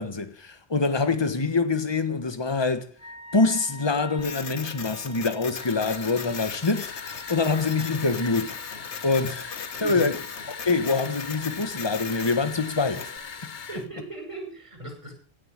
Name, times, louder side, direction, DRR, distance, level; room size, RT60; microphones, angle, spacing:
voice 1, 0.0-2.9 3.3-6.9 7.3-8.6 9.0-10.2 10.6-13.1 13.4-13.5, left 3 dB, 25° left, 1.4 m, -25 dB
Wind instrument woodwind instrument, 2.9-13.7, left 1 dB, 5° right, 3.3 m, -46 dB
Printer, 4.2-13.2, left 6 dB, 85° left, 1.4 m, -39 dB
sound 1, 5.5-13.9, left 6 dB, 50° left, 1.0 m, -40 dB
voice 2, 9.8-10.2 13.7-15.1, right 2 dB, 30° right, 7.5 m, -37 dB
16.0 x 7.6 x 8.8 m
omnidirectional pair, 1.1 m